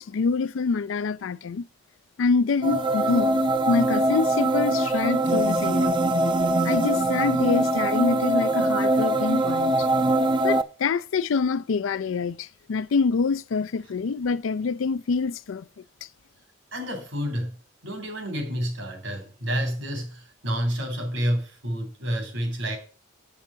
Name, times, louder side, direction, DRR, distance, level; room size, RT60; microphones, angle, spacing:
voice 1, 0.0-1.7 2.2-3.4 3.7-5.9 6.6-9.9 10.4-15.6, left 4 dB, 80° left, 0.4 m, -26 dB
sound 1, 2.6-10.6, right 1 dB, 25° right, 0.5 m, -23 dB
voice 2, 16.7-17.5 17.8-22.8, equal, 75° right, 2.9 m, -29 dB
7.6 x 5.8 x 6.1 m
head